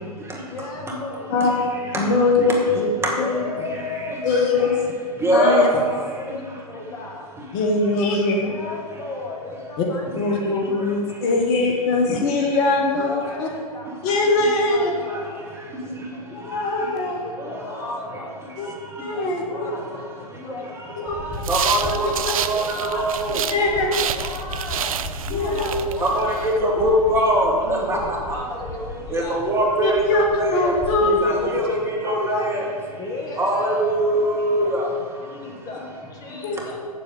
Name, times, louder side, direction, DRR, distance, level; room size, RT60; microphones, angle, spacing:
voice 1, 0.5-1.4 3.1-4.8 5.3-7.4 8.4-10.1 10.4-10.9 12.9-14.1 14.6-16.3 17.1-18.6 19.0-20.1 20.3-21.6 21.9-23.3 23.5-25.0 25.3-26.6 27.4-29.5 31.0-31.7 33.0-34.8 35.2-36.8, left 2 dB, 20° left, 0 dB, 1.7 m, -35 dB
voice 2, 2.0-2.9 3.2-3.4 4.2-4.9 5.3-5.7 7.5-8.4 9.8-9.9 10.1-13.5 14.0-14.9 16.3-17.2 18.6-18.7 19.0-19.7 21.0-21.1 21.8-22.1 23.5-23.9 25.3-25.6 27.9-28.0 29.8-31.3 31.7-32.4 36.4-36.8, left 3 dB, 35° left, 1 dB, 1.6 m, -22 dB
voice 3, 5.2-5.6 21.5-22.6 22.9-23.4 26.0-26.2 26.6-28.0 29.1-30.7 31.1-31.6 32.0-32.6 33.4-34.9, right 1 dB, 15° right, -1 dB, 1.9 m, -21 dB
sound 1, 21.1-31.1, left 1 dB, ahead, 1.3 m, -36 dB
sound 2, 21.4-23.6 23.9-26.5, right 9 dB, 65° right, 0.5 m, -29 dB
7.8 x 7.5 x 7.0 m, 2.1 s
figure-of-eight pair, 110°, 20 cm